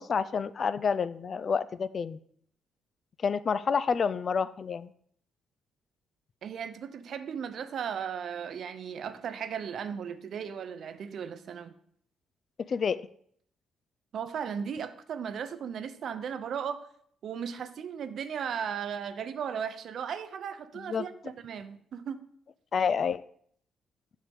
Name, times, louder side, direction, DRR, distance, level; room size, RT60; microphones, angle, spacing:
voice 1, 0.0-2.2 3.2-4.9 12.7-13.1 20.9-21.0 22.7-23.2, left 6 dB, 45° left, 0.3 m, -28 dB
voice 2, 6.4-11.7 14.1-16.9 17.2-22.2, right 7 dB, 65° right, 0.6 m, -36 dB
7.4 x 6.6 x 3.5 m
cardioid pair, 90°, 0 cm